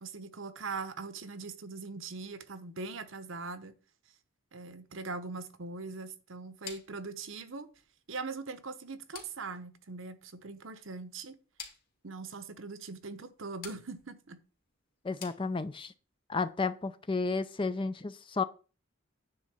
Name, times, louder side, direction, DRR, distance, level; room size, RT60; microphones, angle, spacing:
voice 1, 0.0-3.7 4.5-7.7 8.1-11.4 12.0-14.4, right 4 dB, 65° right, 0.9 m, -41 dB
sound 1, 6.6-16.0, left 7 dB, 45° left, 2.3 m, -52 dB
voice 2, 15.0-15.9 16.3-18.4, left 4 dB, 25° left, 0.4 m, -32 dB
9.5 x 3.7 x 7.0 m
head